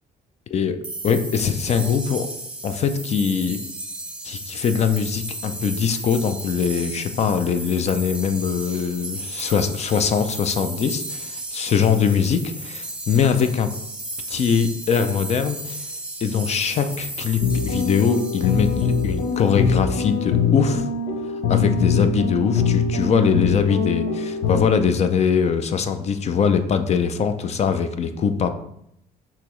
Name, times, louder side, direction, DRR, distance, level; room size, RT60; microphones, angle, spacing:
sound 1, 0.8-19.5, right 2 dB, 5° right, 0.7 m, -34 dB
voice 1, 1.0-2.3 2.6-3.6 4.2-13.7 14.3-15.9 16.2-20.9 21.5-28.5, left 6 dB, 40° left, 9 dB, 0.4 m, -22 dB
sound 2, 17.4-24.6, left 5 dB, 80° left, 0.8 m, -23 dB
5.5 x 3.0 x 3.1 m, 0.74 s
cardioid pair, 110°, 17 cm